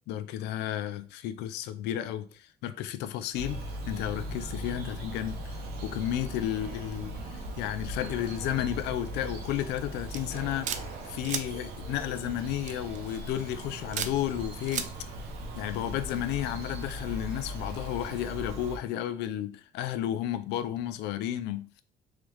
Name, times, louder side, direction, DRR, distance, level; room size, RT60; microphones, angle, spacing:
voice 1, 0.1-10.7 11.0-14.9 15.6-21.7, left 12 dB, 90° left, 0.5 m, -33 dB
Bird vocalization bird call bird song, 3.3-18.8, right 1 dB, 70° right, 0.9 m, -39 dB
sound 1, 10.1-10.8 11.2-11.4 12.7-13.0 13.9-14.1 14.6-14.9, right 8 dB, 45° right, 0.4 m, -32 dB
3.7 x 3.3 x 3.1 m
cardioid pair, 110°, 17 cm